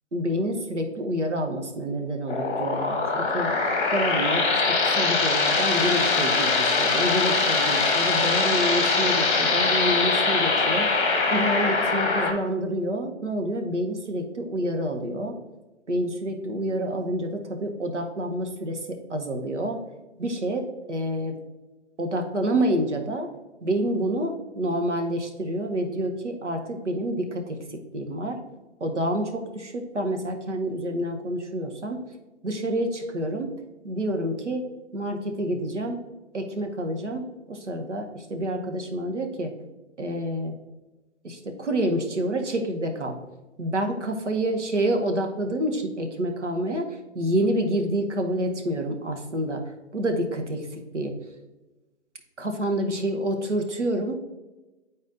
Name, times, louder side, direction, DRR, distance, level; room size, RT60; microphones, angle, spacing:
voice 1, 0.1-3.5 3.9-10.9 11.3-15.3 15.9-19.8 20.2-21.4 22.0-23.3 23.6-28.4 28.8-32.0 32.4-33.6 33.8-34.6 34.9-36.0 36.3-37.2 37.5-39.5 40.0-40.6 41.2-43.2 43.6-51.1 52.4-54.1, right 1 dB, 85° right, 4 dB, 1.0 m, -28 dB
sound 1, 2.3-12.3, left 4 dB, 20° left, 1.1 m, -22 dB
10.0 x 4.1 x 2.6 m, 1.1 s
figure-of-eight pair, 130°, 35 cm